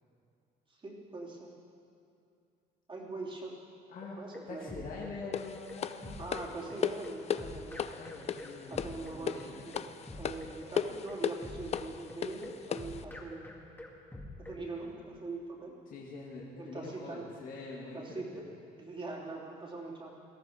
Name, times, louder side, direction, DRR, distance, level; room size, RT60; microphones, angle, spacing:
voice 1, 0.7-1.5 2.9-3.6 4.2-4.8 6.2-7.9 8.7-9.9 10.2-13.6 14.4-15.7 16.6-17.2 17.9-18.5 18.8-20.1, right 3 dB, 30° right, -3 dB, 3.1 m, -42 dB
sound 1, 4.0-14.6, left 1 dB, 10° left, 2.0 m, -46 dB
voice 2, 4.5-6.2 7.9-9.6 15.9-18.3, left 3 dB, 55° left, -4 dB, 2.0 m, -45 dB
sound 2, 5.3-13.0, left 8 dB, 40° left, 0.6 m, -37 dB
18.0 x 13.5 x 4.9 m, 2.5 s
cardioid pair, 110°, 17 cm